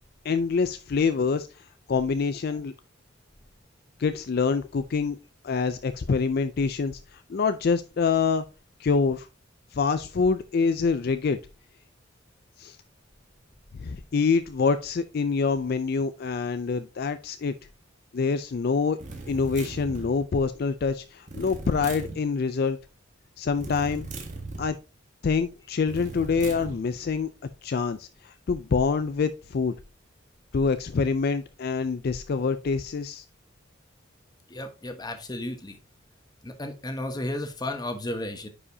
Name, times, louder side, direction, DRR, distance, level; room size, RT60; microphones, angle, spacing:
voice 1, 0.2-2.7 4.0-5.2 5.4-8.4 8.8-9.3 9.7-11.4 12.6-12.8 13.8-17.5 18.1-19.0 19.3-22.8 23.4-24.1 24.6-24.8 25.2-27.3 27.6-29.7 30.5-33.2, left 5 dB, 50° left, 0.4 m, -26 dB
sound 1, 19.0-20.2 21.3-22.2 23.5-24.7 25.9-26.8, right 2 dB, 40° right, 1.8 m, -38 dB
voice 2, 34.5-35.8 36.4-38.5, left 1 dB, 20° left, 1.0 m, -33 dB
9.7 x 5.0 x 2.7 m
head